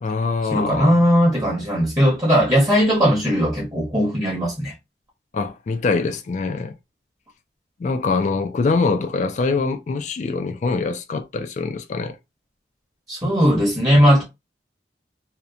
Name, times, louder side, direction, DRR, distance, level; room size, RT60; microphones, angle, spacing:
voice 1, 0.0-1.0 5.3-6.7 7.8-12.2, left 4 dB, 40° left, 0.3 m, -23 dB
voice 2, 0.5-4.7 13.1-14.2, equal, 20° right, 0.9 m, -18 dB
2.8 x 2.1 x 2.4 m
head